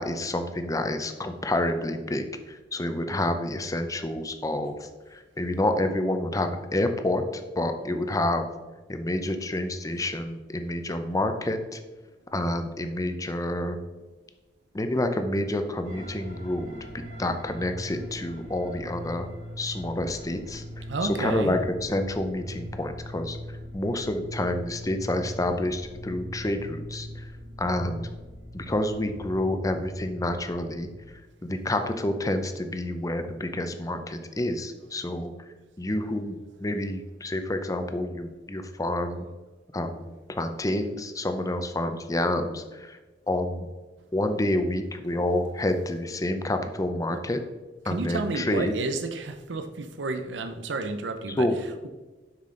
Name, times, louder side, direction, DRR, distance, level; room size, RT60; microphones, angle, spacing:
voice 1, 0.0-7.2 7.5-8.5 8.9-11.8 12.3-13.8 14.7-16.8 17.2-19.3 19.6-20.6 21.0-23.4 23.7-27.2 27.6-28.1 28.5-30.9 31.4-35.3 35.8-36.4 36.6-39.3 39.7-43.0 43.3-43.7 44.1-47.4 47.9-48.7 51.4-51.5, left 1 dB, 20° left, 7 dB, 0.6 m, -28 dB
sound 1, 15.8-31.1, equal, 40° right, 2.1 m, -41 dB
voice 2, 20.9-21.6 47.1-47.2 47.8-51.9, right 3 dB, 85° right, 8 dB, 0.6 m, -31 dB
7.4 x 5.7 x 3.8 m, 1.2 s
head